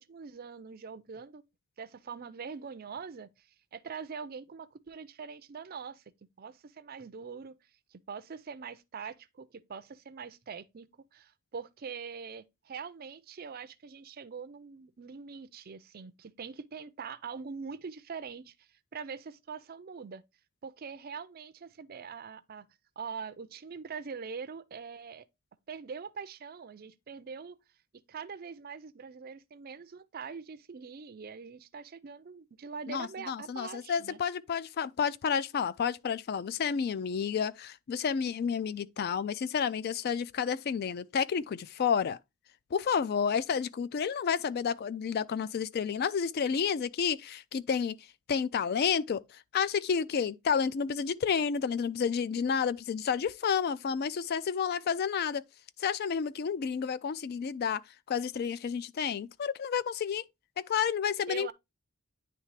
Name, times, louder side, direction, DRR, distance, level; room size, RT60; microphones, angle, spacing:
voice 1, 0.0-1.4 1.8-6.0 6.4-7.6 7.9-20.2 20.6-22.7 23.0-25.3 25.7-27.6 28.1-34.2 61.3-61.5, right 5 dB, 40° right, 0.4 m, -43 dB
voice 2, 32.9-42.2 42.7-48.0 48.3-55.4 55.8-57.8 58.1-60.2 60.6-61.5, left 6 dB, 45° left, 0.3 m, -30 dB
9.4 x 3.2 x 3.2 m
head